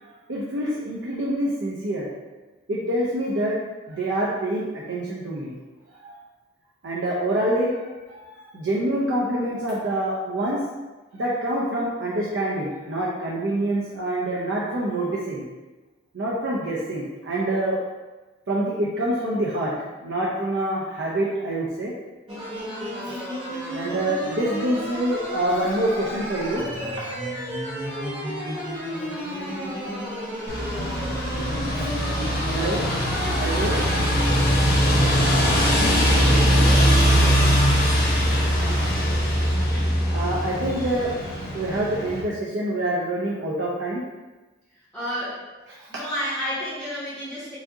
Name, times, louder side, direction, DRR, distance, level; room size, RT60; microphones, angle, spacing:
voice 1, 0.3-2.1 2.7-3.6 3.9-5.6 6.0-6.1 6.8-10.6 11.1-15.5 16.1-17.8 18.5-19.7 20.0-21.9 23.0-23.2 23.7-27.1 29.9-30.1 31.8-31.9 32.5-32.8 33.4-33.8 34.4-34.6 38.6-38.9 40.1-41.1 41.5-44.0 45.8-45.9, right 1 dB, 70° right, -5 dB, 0.6 m, -26 dB
sound 1, 22.3-34.1, equal, 25° right, 1.0 m, -32 dB
sound 2, 30.5-42.2, equal, 50° left, 0.9 m, -21 dB
voice 2, 36.6-37.6 39.7-40.0 44.9-45.4 45.9-47.6, equal, 5° left, -13 dB, 1.3 m, -31 dB
4.7 x 2.6 x 2.7 m, 1.2 s
head